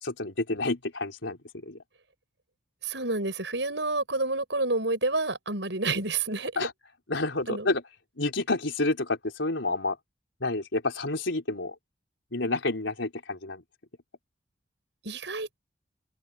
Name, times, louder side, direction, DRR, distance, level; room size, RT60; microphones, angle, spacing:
voice 1, 0.0-1.4 1.7-1.8 6.6-6.7 7.1-7.8 8.2-10.0 10.4-11.7 12.3-13.6, left 2 dB, 85° left, 4.2 m, -29 dB
voice 2, 2.8-6.7 7.5-7.7 15.0-15.6, right 2 dB, 70° right, 6.9 m, -29 dB
open air
head